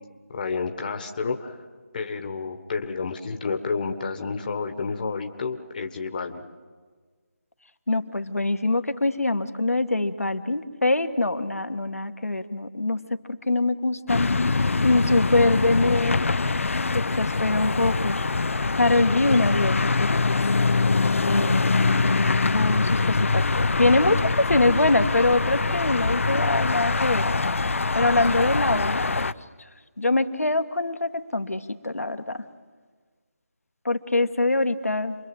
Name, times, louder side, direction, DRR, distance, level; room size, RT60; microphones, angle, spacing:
voice 1, 0.3-1.6 1.9-6.4, left 4 dB, 35° left, 5 dB, 1.4 m, -30 dB
voice 2, 7.9-13.2 13.5-16.2 16.9-18.2 18.7-20.4 21.3-27.3 27.6-29.3 30.0-32.4 33.9-35.2, left 2 dB, 90° left, 8 dB, 1.9 m, -24 dB
sound 1, 14.1-29.3, left 3 dB, 65° left, 0.8 m, -23 dB
28.0 x 22.5 x 7.9 m, 1.5 s
figure-of-eight pair, 160°, 8 cm